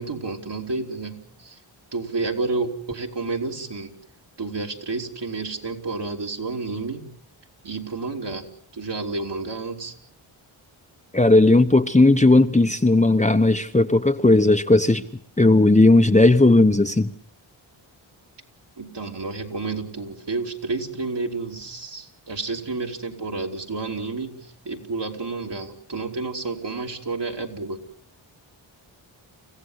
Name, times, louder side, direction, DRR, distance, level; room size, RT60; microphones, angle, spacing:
voice 1, 0.0-1.6 1.9-3.9 4.4-7.0 7.6-8.5 8.7-9.9 18.8-24.4 24.7-27.8, right 3 dB, 55° right, 1 dB, 3.4 m, -30 dB
voice 2, 11.1-15.0 15.4-17.1, left 2 dB, 15° left, 6 dB, 1.1 m, -16 dB
29.0 x 15.5 x 8.2 m, 0.62 s
cardioid pair, 55°, 50 cm